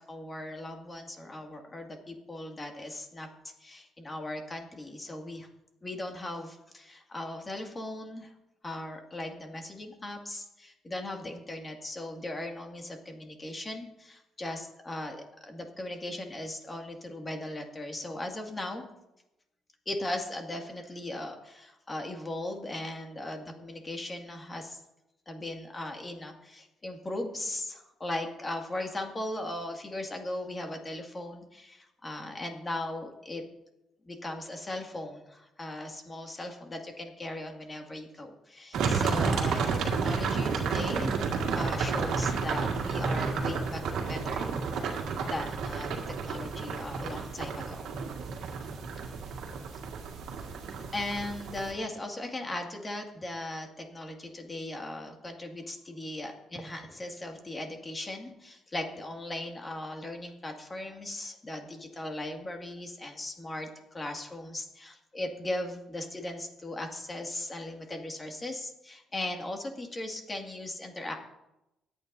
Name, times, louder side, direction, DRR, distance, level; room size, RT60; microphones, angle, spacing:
voice 1, 0.0-5.5 5.8-8.3 8.6-18.9 19.9-24.8 25.3-33.4 34.0-41.2 41.5-44.9 45.2-47.9 50.9-71.1, left 1 dB, 25° left, 3 dB, 2.2 m, -38 dB
sound 1, 38.7-51.7, right 5 dB, 80° right, 1.8 m, -31 dB
24.5 x 8.9 x 2.7 m, 0.91 s
cardioid pair, 90°, 0 cm